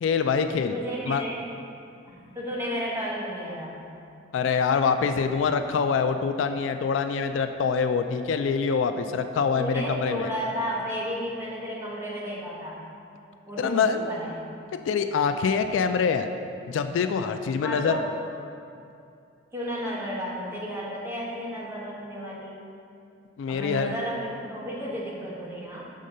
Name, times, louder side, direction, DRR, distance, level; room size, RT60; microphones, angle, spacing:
voice 1, 0.0-0.7 1.1-1.2 4.3-10.3 13.6-14.1 14.9-16.3 16.7-17.9 23.4-23.9, left 5 dB, 75° left, 8 dB, 0.3 m, -25 dB
voice 2, 0.7-1.5 2.1-3.7 9.0-9.1 9.5-12.8 13.5-14.3 17.6-18.1 19.5-22.6 23.5-25.9, equal, 15° right, -6 dB, 1.2 m, -33 dB
6.4 x 3.7 x 5.4 m, 2.5 s
head